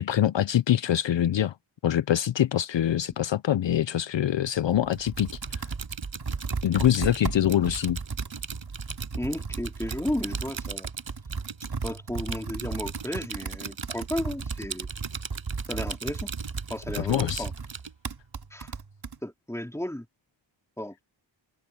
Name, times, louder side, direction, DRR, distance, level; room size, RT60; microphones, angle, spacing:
voice 1, 0.0-1.6 1.8-5.7 6.6-8.0 17.0-17.4, left 11 dB, 70° left, 0.6 m, -24 dB
Computer keyboard, 4.6-19.2, right 4 dB, 55° right, 3.0 m, -36 dB
Typing, 4.9-17.9, right 6 dB, 75° right, 6.2 m, -39 dB
voice 2, 9.1-10.9 11.8-14.9 15.7-16.3 16.7-17.5 18.5-18.7 19.2-20.1 20.8-21.0, left 1 dB, 5° left, 3.5 m, -33 dB
wide cardioid pair, 115°, 47 cm